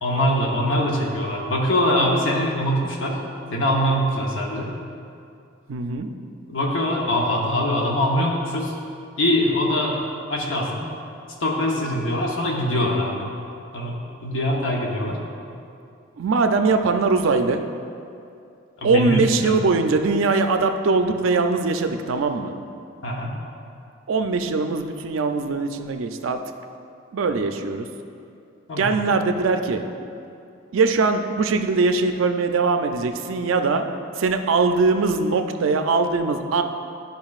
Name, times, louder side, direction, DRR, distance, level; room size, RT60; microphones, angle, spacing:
voice 1, 0.0-3.2 3.5-4.7 6.5-8.7 9.2-10.9 11.4-13.3 13.7-15.2 18.8-19.5 23.0-23.4 28.7-28.9, equal, 70° left, -1 dB, 0.9 m, -23 dB
voice 2, 5.7-6.1 16.2-17.6 18.8-22.5 24.1-26.4 27.1-27.9 28.8-29.8 30.7-33.9 34.2-36.6, right 3 dB, 75° right, 7 dB, 0.4 m, -21 dB
10.5 x 5.3 x 2.4 m, 2.5 s
head